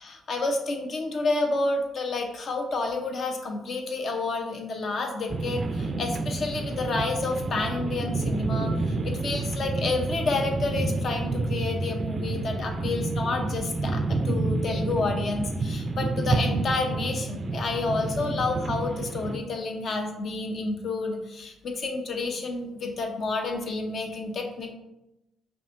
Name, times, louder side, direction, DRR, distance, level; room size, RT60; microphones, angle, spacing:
voice 1, 0.0-24.7, left 3 dB, 55° left, 3 dB, 0.7 m, -30 dB
sound 1, 5.3-19.4, right 3 dB, 40° right, 0.3 m, -29 dB
5.4 x 2.5 x 2.5 m, 0.92 s
cardioid pair, 90°, 0 cm